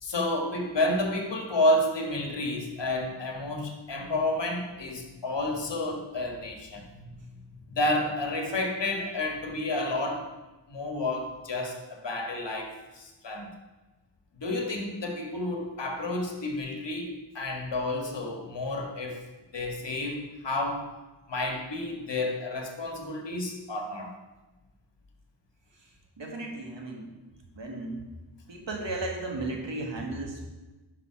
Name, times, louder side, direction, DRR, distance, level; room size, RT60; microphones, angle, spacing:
voice 1, 0.0-7.3 7.7-10.3 10.7-13.5 14.4-19.3 19.5-20.9 21.3-24.1, left 1 dB, 70° left, 3 dB, 1.8 m, -30 dB
voice 2, 26.2-27.1 27.6-28.0 28.5-30.4, right 2 dB, 80° right, 1 dB, 2.0 m, -34 dB
11.0 x 5.7 x 5.7 m, 1.1 s
wide cardioid pair, 90°, 44 cm